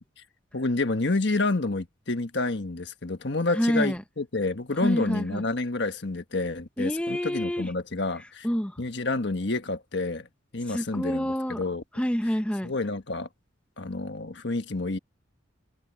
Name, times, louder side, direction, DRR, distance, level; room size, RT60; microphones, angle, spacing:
voice 1, 0.5-8.5 8.8-10.3 10.5-11.8 12.6-13.3 13.8-15.0, left 2 dB, 60° left, 1.4 m, -29 dB
voice 2, 3.5-4.0 4.8-5.4 6.8-7.7 8.4-8.8 10.7-11.6 11.9-12.7, equal, 5° left, 0.8 m, -27 dB
open air
head